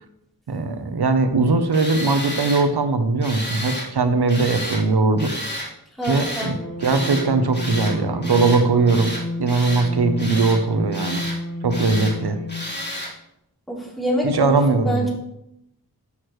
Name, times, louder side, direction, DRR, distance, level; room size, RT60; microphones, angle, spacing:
voice 1, 0.5-5.3 6.1-9.1 9.4-11.2 11.6-12.4 14.2-15.1, right 3 dB, 80° right, 8 dB, 1.0 m, -20 dB
Tools, 1.7-2.6 3.2-3.9 4.3-4.8 5.2-5.7 6.0-6.5 6.8-7.3 7.5-7.9 8.2-8.6 8.9-9.9 10.2-10.6 10.9-11.4 11.7-12.1 12.5-13.1, left 1 dB, 25° left, 3.6 m, -31 dB
sound 1, 6.0-12.8, left 1 dB, 80° left, 2.1 m, -31 dB
voice 2, 6.0-6.5 13.7-15.1, equal, ahead, -5 dB, 3.5 m, -25 dB
12.5 x 6.5 x 3.2 m, 0.82 s
wide cardioid pair, 75°, 39 cm